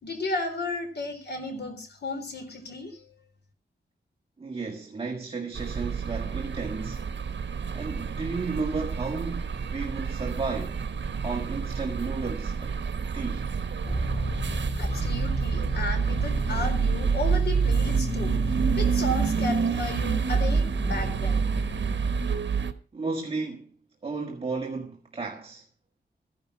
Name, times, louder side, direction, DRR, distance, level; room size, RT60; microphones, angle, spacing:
voice 1, 0.0-3.0 14.8-18.3 18.7-21.5, left 2 dB, 65° left, 3.8 m, -33 dB
voice 2, 4.4-7.1 7.7-10.8 11.2-12.8 13.1-13.5 22.9-23.7 24.0-25.6, right 4 dB, 30° right, 1.8 m, -33 dB
sound 1, 5.6-22.7, right 6 dB, 75° right, 1.3 m, -28 dB
sound 2, 13.8-22.2, left 1 dB, 40° left, 4.8 m, -33 dB
14.5 x 10.5 x 5.9 m
wide cardioid pair, 145°, 19 cm